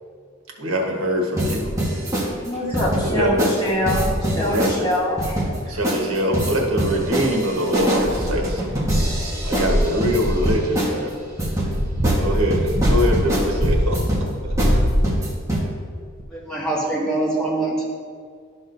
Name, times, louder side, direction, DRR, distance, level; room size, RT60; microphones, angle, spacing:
voice 1, 0.6-1.7 2.6-3.5 4.5-4.9 5.7-8.7 9.4-11.1 12.2-14.2 14.4-14.8, equal, 85° right, 0 dB, 1.3 m, -24 dB
sound 1, 1.4-2.3 2.7-3.1 3.4-3.6 3.9-4.8 5.2-5.6 5.8-6.0 6.3-11.0 11.4-11.7 12.0-12.2 12.5-13.5 13.9-14.2 14.6-14.7 15.0-15.6, right 1 dB, 15° right, 1.2 m, -24 dB
sound 2, 1.6-1.9 2.5-2.6 3.1-3.3 3.8-4.3 5.7-5.8 6.5-7.2 7.7-10.6 11.3-14.1 14.4-15.4 16.2-16.3, equal, 35° right, 0.8 m, -23 dB
voice 2, 2.4-5.5, left 1 dB, 20° left, -6 dB, 2.0 m, -24 dB
voice 3, 16.3-17.8, right 2 dB, 5° left, -7 dB, 1.8 m, -24 dB
11.5 x 6.3 x 2.6 m, 2.1 s
head